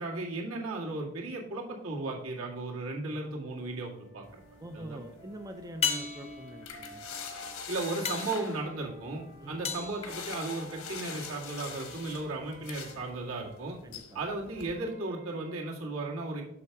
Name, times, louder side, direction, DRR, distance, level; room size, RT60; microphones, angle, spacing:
voice 1, 0.0-4.4 4.7-5.0 7.7-13.8 14.1-16.4, right 2 dB, 75° right, -2 dB, 2.0 m, -35 dB
sound 1, 3.0-7.6 8.3-13.6 14.5-15.7, right 2 dB, 35° right, 1.1 m, -54 dB
sound 2, 3.5-4.1 5.8-11.0 15.4-15.5, left 6 dB, 30° left, 0.6 m, -37 dB
sound 3, 4.2-14.7, left 6 dB, 80° left, 1.2 m, -45 dB
voice 2, 4.6-7.1 9.4-9.6 13.8-14.2, right 1 dB, 15° right, 6 dB, 0.4 m, -44 dB
7.0 x 5.9 x 4.7 m, 0.83 s
head